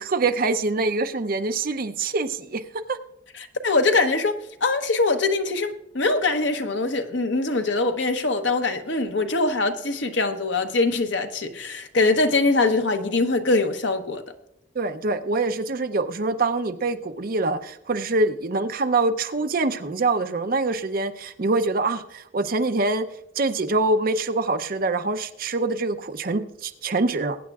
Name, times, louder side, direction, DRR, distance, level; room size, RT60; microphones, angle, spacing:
voice 1, 0.0-2.6 2.9-3.0 14.8-23.1 23.4-27.4, right 3 dB, 45° right, 0.6 m, -24 dB
voice 2, 3.4-4.3 4.6-14.2, left 3 dB, 65° left, 1.0 m, -23 dB
22.0 x 9.3 x 2.4 m
head